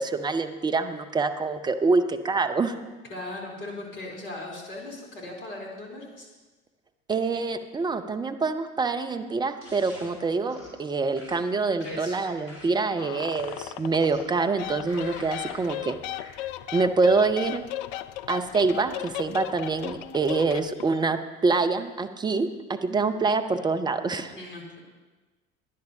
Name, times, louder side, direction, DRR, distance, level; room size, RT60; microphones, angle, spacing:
voice 1, 0.0-2.7 7.1-16.0 16.7-17.6 18.3-24.4, right 4 dB, 10° right, 8 dB, 0.6 m, -26 dB
voice 2, 3.1-6.3 11.8-12.2 24.3-24.8, left 2 dB, 55° left, -2 dB, 3.6 m, -38 dB
sound 1, 9.6-10.1 10.5-10.8 11.2-12.9 13.3-14.4 14.9-15.7 16.2-16.3, left 1 dB, 90° right, 3.3 m, -47 dB
sound 2, 13.0-14.3 14.6-21.0, left 14 dB, 40° left, 0.4 m, -36 dB
18.0 x 10.5 x 2.8 m, 1.2 s
figure-of-eight pair, 70°, 42 cm